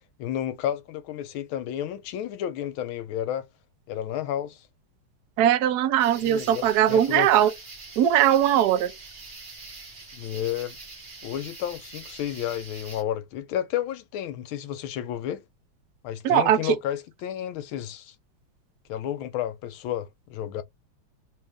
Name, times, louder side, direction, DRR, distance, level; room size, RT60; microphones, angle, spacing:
voice 1, 0.2-3.5 3.9-4.7 6.2-7.3 10.1-10.8 11.2-15.4 16.0-18.1 18.9-20.6, left 11 dB, 80° left, 1.3 m, -31 dB
voice 2, 5.4-7.5 8.0-8.9 16.2-16.7, right 11 dB, 70° right, 0.9 m, -20 dB
sound 1, 6.0-13.0, right 3 dB, 35° right, 0.9 m, -44 dB
3.7 x 2.5 x 3.3 m
omnidirectional pair, 2.4 m